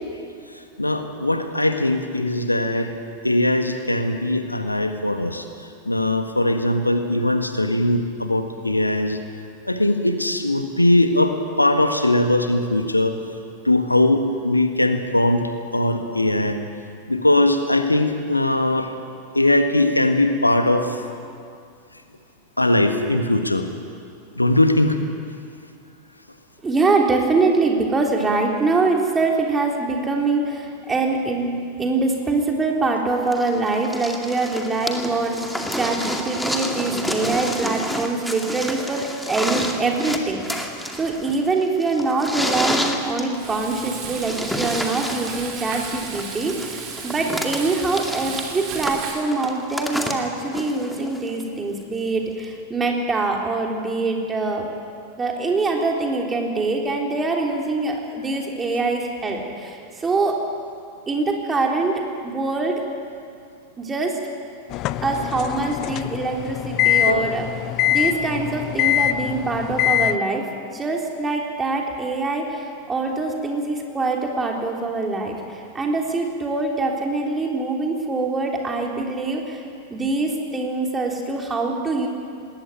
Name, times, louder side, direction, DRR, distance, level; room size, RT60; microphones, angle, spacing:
voice 1, 0.8-2.9 3.2-9.2 9.6-13.2 13.6-16.6 17.1-18.9 19.3-21.0 22.6-23.6 24.4-25.0 67.1-67.2, left 1 dB, 85° left, 7 dB, 1.6 m, -20 dB
voice 2, 26.6-31.5 31.8-54.7 55.2-60.4 61.1-62.8 63.8-64.2 65.0-67.4 67.9-70.5 70.7-79.6 79.9-82.1, right 3 dB, 15° right, 1 dB, 3.7 m, -24 dB
sound 1, 33.3-51.4 52.4-52.5, equal, ahead, 2.2 m, -29 dB
Frying (food), 43.3-49.3, right 5 dB, 35° right, 3.8 m, -35 dB
sound 2, 64.7-70.2, left 12 dB, 40° left, 0.6 m, -23 dB
20.0 x 17.5 x 9.3 m, 2.3 s
figure-of-eight pair, 90°, 0 cm